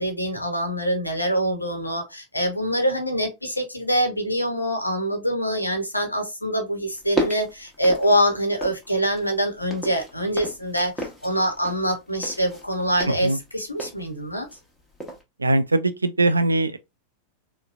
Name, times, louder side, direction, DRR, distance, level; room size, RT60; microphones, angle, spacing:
voice 1, 0.0-14.5, equal, 85° left, 0.8 m, -24 dB
sound 1, 6.9-8.9 9.2-14.7 15.0-15.2, equal, 10° left, 1.1 m, -34 dB
voice 2, 15.4-16.8, right 2 dB, 80° right, 0.3 m, -21 dB
3.9 x 2.2 x 2.4 m
figure-of-eight pair, 90°, 0 cm